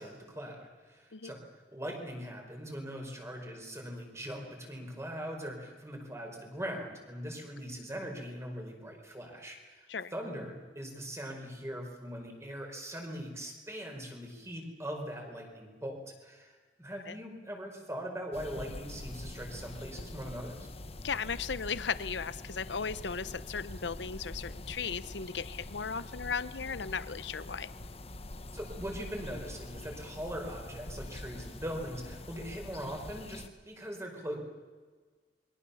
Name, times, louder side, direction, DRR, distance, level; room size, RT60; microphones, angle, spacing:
voice 1, 0.0-1.4 1.7-9.9 10.1-20.7 28.5-34.4, equal, 15° right, 3 dB, 5.0 m, -41 dB
sound 1, 18.3-33.5, left 1 dB, 35° left, 1.1 m, -45 dB
voice 2, 21.0-27.7, left 6 dB, 80° left, 15 dB, 0.8 m, -36 dB
28.0 x 23.0 x 7.1 m, 1.4 s
head